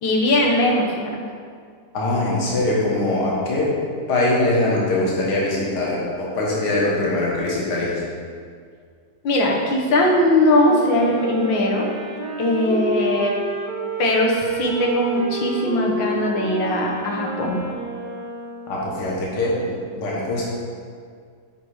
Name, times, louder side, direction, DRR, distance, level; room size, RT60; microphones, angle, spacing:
voice 1, 0.0-1.1 9.2-11.9 12.4-13.3 14.0-17.6, left 1 dB, 85° left, -1 dB, 1.8 m, -20 dB
voice 2, 1.9-3.7 4.1-8.0 18.7-20.5, left 2 dB, 60° left, -5 dB, 2.0 m, -22 dB
Wind instrument woodwind instrument, 10.6-19.0, right 1 dB, 70° right, 1.6 m, -30 dB
8.2 x 4.7 x 4.8 m, 2.1 s
omnidirectional pair, 2.0 m